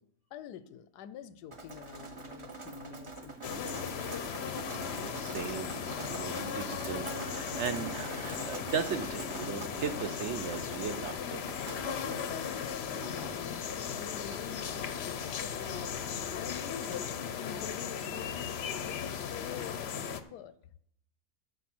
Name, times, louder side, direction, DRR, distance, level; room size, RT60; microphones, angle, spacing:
voice 1, 0.3-4.0 12.0-13.7 14.0-15.5 16.3-20.5, left 9 dB, 90° left, 14 dB, 1.2 m, -46 dB
Drip, 1.5-16.9, right 3 dB, 30° right, 0.6 m, -45 dB
sound 1, 3.4-20.2, left 7 dB, 55° left, 0.7 m, -37 dB
voice 2, 5.0-5.7 6.1-11.6, right 7 dB, 65° right, 9 dB, 0.7 m, -37 dB
13.5 x 4.8 x 6.0 m, 0.69 s
omnidirectional pair, 1.7 m